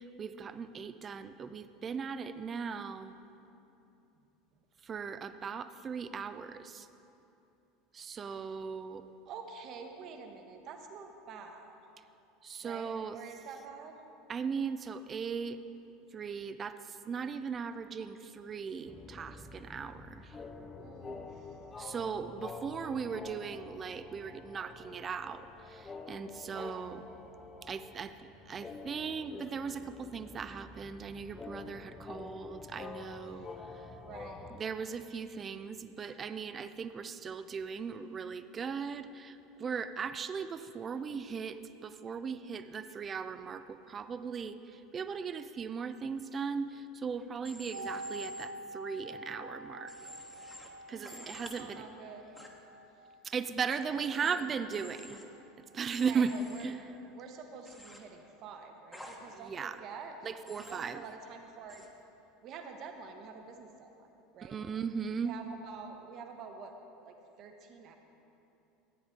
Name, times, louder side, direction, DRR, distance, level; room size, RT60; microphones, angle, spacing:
voice 1, 0.0-3.1 4.8-6.9 7.9-9.0 12.4-13.2 14.3-15.6 16.1-20.4 21.8-27.0 27.6-33.9 34.5-49.9 50.9-51.8 53.2-55.2 55.7-56.3 56.6-56.8 59.3-59.8 60.2-61.0 64.4-65.4, right 6 dB, 30° right, 12 dB, 0.4 m, -38 dB
voice 2, 8.0-8.6 9.3-11.8 12.6-14.0 20.7-21.6 22.2-22.4 26.4-26.8 33.3-33.6 34.0-34.6 50.9-52.4 52.9-53.1 53.9-54.5 56.0-56.8 57.1-60.2 60.4-61.9 62.4-64.6 65.2-66.7 67.0-67.9, right 5 dB, 45° right, 5 dB, 1.0 m, -48 dB
sound 1, 18.9-34.6, left 3 dB, 20° left, 0.6 m, -47 dB
Human voice / Train, 47.4-48.4 49.9-50.7 51.0-51.6 52.4-52.5 54.2-54.3 54.7-55.2 55.9-56.6 57.6-58.0 58.9-59.2 60.5-60.8 61.7-61.9, equal, 5° left, 1.1 m, -50 dB
sound 2, 47.7-57.5 57.7-57.8, right 1 dB, 75° right, 0.9 m, -48 dB
13.0 x 9.3 x 3.7 m, 2.9 s
figure-of-eight pair, 75°, 0 cm